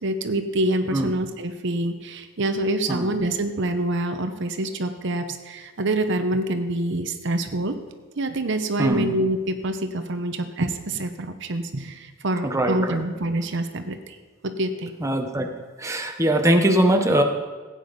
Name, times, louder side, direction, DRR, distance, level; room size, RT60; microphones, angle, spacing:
voice 1, 0.0-7.8 8.2-14.2 14.4-14.9, right 1 dB, 60° right, 7 dB, 0.9 m, -26 dB
voice 2, 8.8-9.1 12.4-13.0 15.0-15.5 15.8-17.2, right 1 dB, 15° right, 3 dB, 1.0 m, -21 dB
15.5 x 9.0 x 5.2 m, 1.4 s
head